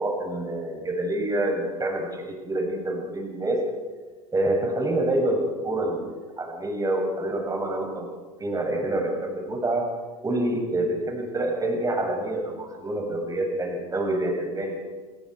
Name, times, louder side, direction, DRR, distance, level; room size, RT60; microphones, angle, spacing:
voice 1, 0.0-3.6 4.3-8.1 8.4-9.9 10.2-14.8, right 1 dB, 20° right, 1 dB, 7.4 m, -27 dB
30.0 x 19.0 x 4.8 m, 1.4 s
hypercardioid pair, 85°, 19 cm